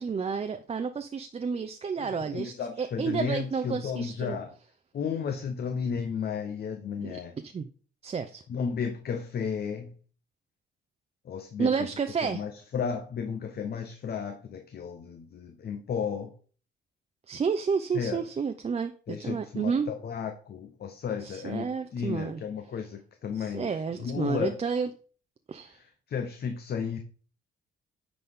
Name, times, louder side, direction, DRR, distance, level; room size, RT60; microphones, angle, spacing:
voice 1, 0.0-4.4 7.0-7.2 7.5-7.7 8.0-8.4 11.6-12.4 17.3-19.9 21.2-22.4 23.3-24.9 25.5-25.8, right 5 dB, 30° right, 0.6 m, -30 dB
voice 2, 2.3-4.5 4.9-7.3 8.5-9.9 11.2-11.7 12.2-16.3 17.9-18.2 19.1-24.6 25.7-27.0, left 6 dB, 55° left, 0.8 m, -33 dB
9.9 x 4.1 x 3.6 m
cardioid pair, 90°, 20 cm